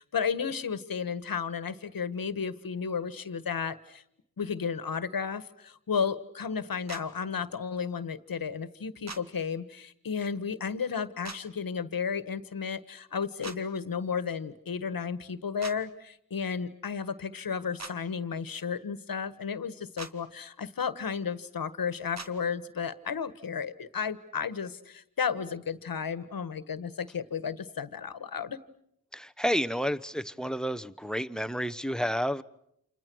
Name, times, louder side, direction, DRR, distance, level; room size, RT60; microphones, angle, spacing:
voice 1, 0.0-4.0 4.4-28.6, left 6 dB, 70° left, 1.5 m, -33 dB
sound 1, 6.9-7.0 9.1-9.2 11.2-11.4 13.4-13.6 15.6-15.8 17.8-17.9 20.0-20.1 22.2-22.3, right 3 dB, 45° right, 2.2 m, -40 dB
voice 2, 29.1-32.4, equal, ahead, 1.0 m, -30 dB
29.5 x 27.5 x 6.3 m
cardioid pair, 60°, 36 cm